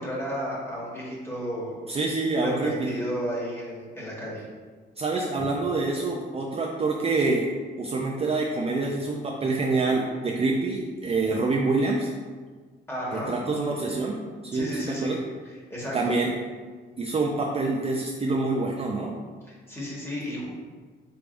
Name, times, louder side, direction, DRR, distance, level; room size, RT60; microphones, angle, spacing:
voice 1, 0.0-1.8 2.4-4.5 12.9-13.3 14.5-15.2 15.4-16.1 19.5-20.5, equal, 10° left, -5 dB, 1.4 m, -33 dB
voice 2, 1.9-2.9 5.0-7.5 7.8-12.1 13.1-15.2 15.9-16.3 17.0-19.1, right 3 dB, 30° right, -1 dB, 0.4 m, -26 dB
4.7 x 3.3 x 2.5 m, 1.5 s
cardioid pair, 90°, 20 cm